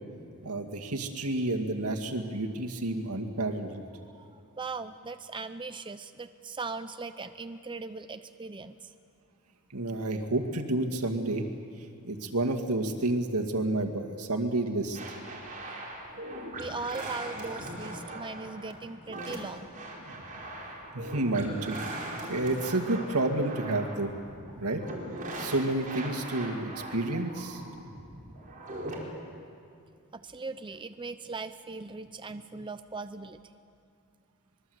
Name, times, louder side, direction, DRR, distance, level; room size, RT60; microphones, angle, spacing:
voice 1, 0.4-3.8 9.7-11.5 12.0-15.0 20.9-24.1 24.6-24.8 25.4-27.6, right 2 dB, 80° right, 4 dB, 2.2 m, -30 dB
voice 2, 4.1-8.9 16.5-19.7 30.1-33.5, right 3 dB, 20° right, 9 dB, 0.6 m, -39 dB
sound 1, 14.9-29.0, right 1 dB, 40° right, 4.7 m, -40 dB
25.0 x 22.0 x 8.0 m, 2.4 s
head